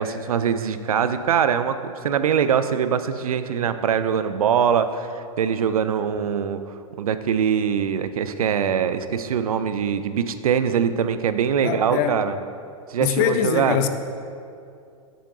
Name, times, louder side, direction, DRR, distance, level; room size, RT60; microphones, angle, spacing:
voice 1, 0.0-6.6 7.0-12.4 12.9-13.8, right 7 dB, 80° right, 11 dB, 0.4 m, -23 dB
voice 2, 11.6-12.2 13.0-13.9, left 9 dB, 40° left, 8 dB, 0.4 m, -22 dB
7.6 x 6.5 x 2.5 m, 2.4 s
hypercardioid pair, 110°, 18 cm